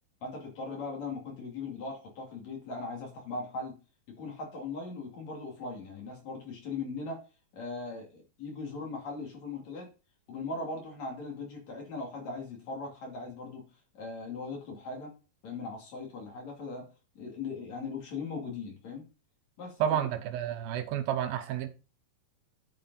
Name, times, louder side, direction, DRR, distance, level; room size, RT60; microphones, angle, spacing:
voice 1, 0.2-3.8 4.1-7.2 7.5-9.9 10.3-13.7 13.9-15.1 15.4-16.9 17.2-19.0 19.6-20.2, left 3 dB, 50° left, 3.6 m, -39 dB
voice 2, 19.8-21.7, right 10 dB, 80° right, 2.6 m, -30 dB
10.5 x 5.2 x 4.1 m
omnidirectional pair, 4.4 m